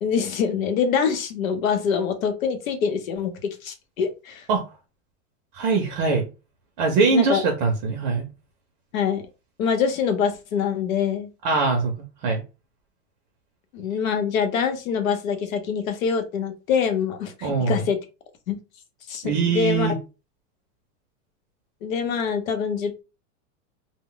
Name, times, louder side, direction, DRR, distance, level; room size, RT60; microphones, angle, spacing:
voice 1, 0.0-4.5 7.1-7.4 8.9-9.2 9.6-11.3 13.7-18.0 18.5-18.6 19.1-19.9 21.8-23.0, left 6 dB, 85° left, 7 dB, 0.8 m, -25 dB
voice 2, 5.5-6.3 6.8-8.3 11.4-12.4 17.4-17.9 19.2-20.0, right 4 dB, 35° right, 3 dB, 0.5 m, -22 dB
2.1 x 2.0 x 3.7 m, 0.30 s
supercardioid pair, 160°, 39 cm